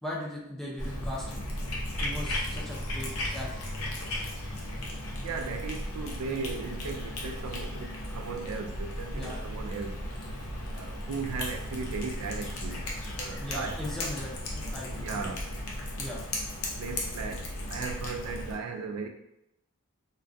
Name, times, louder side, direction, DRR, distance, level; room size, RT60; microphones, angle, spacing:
voice 1, 0.0-1.5 2.0-3.6 9.1-9.4 13.4-15.3 16.0-16.2, left 1 dB, ahead, -6 dB, 0.4 m, -39 dB
Cat, 0.8-18.5, left 1 dB, 70° left, 0.5 m, -35 dB
voice 2, 5.2-10.0 10.7-13.9 14.9-15.4 16.8-19.1, right 5 dB, 90° right, 4 dB, 0.3 m, -37 dB
2.2 x 2.2 x 2.5 m, 0.83 s
head